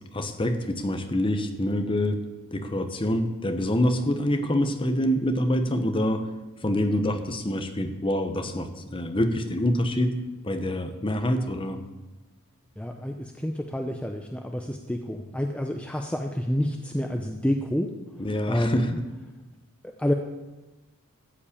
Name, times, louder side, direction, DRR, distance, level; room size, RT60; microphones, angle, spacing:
voice 1, 0.1-6.3 6.6-11.8 18.2-19.0, left 1 dB, 25° left, 7 dB, 0.9 m, -26 dB
voice 2, 12.8-17.9 18.5-18.9 19.8-20.1, left 1 dB, 5° left, 3 dB, 0.6 m, -28 dB
13.5 x 5.4 x 8.5 m, 1.1 s
head